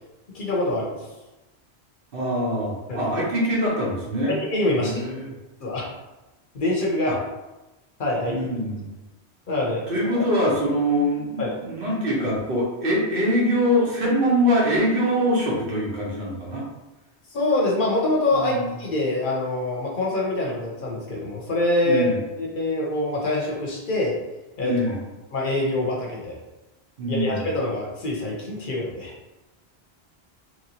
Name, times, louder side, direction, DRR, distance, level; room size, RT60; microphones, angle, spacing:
voice 1, 0.3-1.0 2.9-3.0 4.3-5.1 5.6-5.9 6.5-7.1 8.0-8.4 9.5-10.2 11.4-11.5 17.3-22.1 22.4-24.1 24.6-24.7 25.3-26.4 27.1-29.1, left 2 dB, 55° left, -2 dB, 0.7 m, -25 dB
voice 2, 2.1-4.4 4.7-5.3 7.1-7.2 8.3-8.9 9.9-16.7 18.3-18.7 21.8-22.2 24.6-25.0 27.0-27.4, equal, 60° right, -4 dB, 1.0 m, -23 dB
3.0 x 2.9 x 2.7 m, 1.1 s
omnidirectional pair, 1.1 m